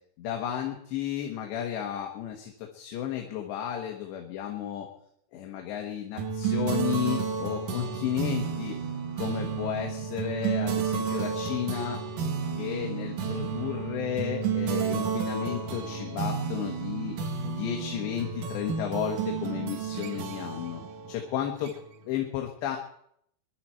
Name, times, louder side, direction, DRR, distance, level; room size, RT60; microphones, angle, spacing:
voice 1, 0.2-4.9 5.3-8.8 9.2-12.0 12.6-17.2 17.5-20.8 21.1-21.7 22.1-22.8, left 10 dB, 75° left, 2 dB, 3.5 m, -33 dB
sound 1, 6.2-22.1, right 6 dB, 55° right, 2.6 m, -31 dB
24.0 x 11.5 x 4.5 m, 0.70 s
omnidirectional pair, 5.1 m